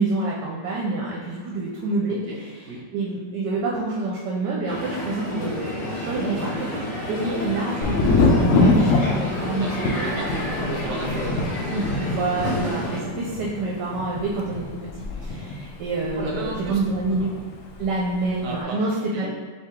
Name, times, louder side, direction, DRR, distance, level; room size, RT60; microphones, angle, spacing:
voice 1, 0.0-2.5 2.9-6.7 7.1-10.2 10.8-11.0 11.7-14.9 15.1-17.3 17.8-19.3, right 3 dB, 75° right, -3 dB, 1.2 m, -27 dB
voice 2, 2.1-2.8 7.2-7.7 8.5-8.7 9.6-11.5 16.1-16.8 17.1-17.2 18.4-19.3, right 2 dB, 55° right, -2 dB, 0.6 m, -34 dB
Crowd, 4.7-13.0, left 1 dB, 55° left, 1.2 m, -30 dB
Thunder, 7.8-17.5 17.7-18.4, left 3 dB, 80° left, 0.7 m, -25 dB
4.6 x 3.0 x 3.5 m, 1.5 s
omnidirectional pair, 1.9 m